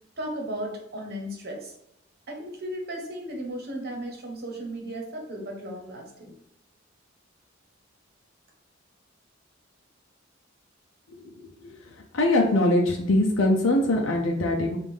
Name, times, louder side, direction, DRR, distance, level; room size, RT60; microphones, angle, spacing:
voice 1, 0.2-1.7 2.3-6.3, right 1 dB, 55° right, 1 dB, 1.1 m, -35 dB
voice 2, 12.1-14.8, left 1 dB, 75° left, 0 dB, 0.6 m, -22 dB
5.1 x 2.5 x 3.5 m, 0.80 s
head